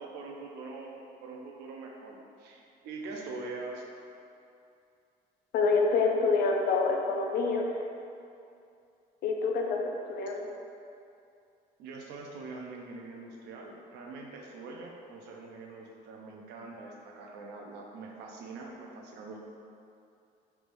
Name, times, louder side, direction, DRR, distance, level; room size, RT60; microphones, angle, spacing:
voice 1, 0.0-3.8 11.8-19.4, right 3 dB, 85° right, 0 dB, 0.5 m, -43 dB
voice 2, 5.5-7.7 9.2-10.5, left 4 dB, 65° left, 1 dB, 0.5 m, -27 dB
3.4 x 3.2 x 2.5 m, 2.5 s
cardioid pair, 110°, 17 cm